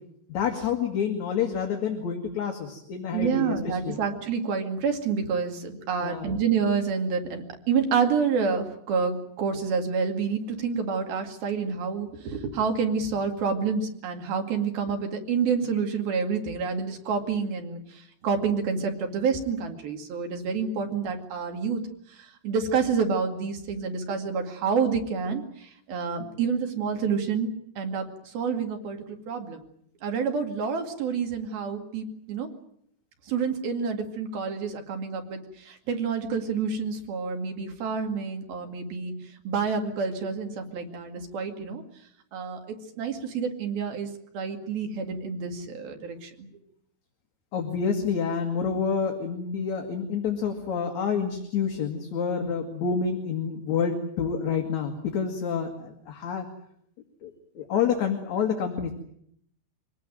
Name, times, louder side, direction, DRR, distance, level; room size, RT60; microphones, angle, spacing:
voice 1, 0.3-4.0 6.0-6.3 47.5-56.5 57.2-58.9, left 6 dB, 50° left, 3 dB, 2.8 m, -28 dB
voice 2, 3.1-21.8 22.1-27.5 27.8-29.7 30.0-32.5 33.3-39.1 39.5-41.8 42.3-44.1 44.3-46.5, right 5 dB, 60° right, 4 dB, 3.9 m, -28 dB
24.5 x 19.0 x 9.1 m, 0.71 s
omnidirectional pair, 5.0 m